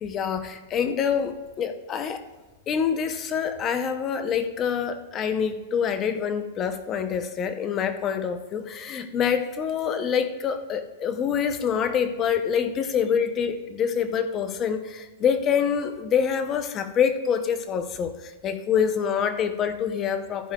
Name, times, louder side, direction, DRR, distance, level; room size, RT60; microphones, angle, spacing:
voice 1, 0.0-2.3 2.7-20.5, left 7 dB, 15° left, 9 dB, 0.6 m, -26 dB
15.0 x 9.5 x 2.3 m, 1.3 s
supercardioid pair, 180°, 0 cm